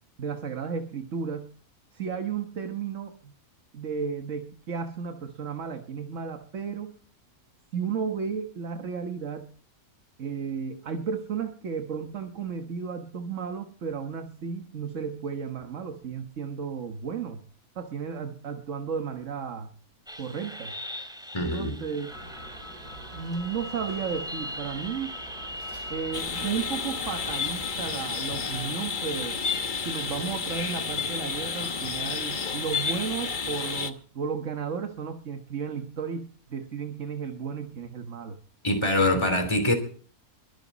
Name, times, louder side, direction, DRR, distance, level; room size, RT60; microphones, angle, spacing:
voice 1, 0.2-1.5 1.9-3.3 3.7-6.9 7.7-9.5 10.2-17.4 17.7-19.7 20.2-20.7 21.4-22.1 23.1-25.1 25.9-29.4 29.8-38.4, right 6 dB, 55° right, 1.6 m, -33 dB
sound 1, 20.1-26.2, left 1 dB, 5° right, 2.5 m, -40 dB
voice 2, 21.3-21.8 38.6-39.7, left 1 dB, 15° left, 3.2 m, -24 dB
sound 2, 22.1-27.8, equal, 85° right, 4.2 m, -44 dB
sound 3, 26.1-33.9, left 5 dB, 35° left, 1.1 m, -31 dB
22.5 x 11.0 x 4.1 m
omnidirectional pair, 1.6 m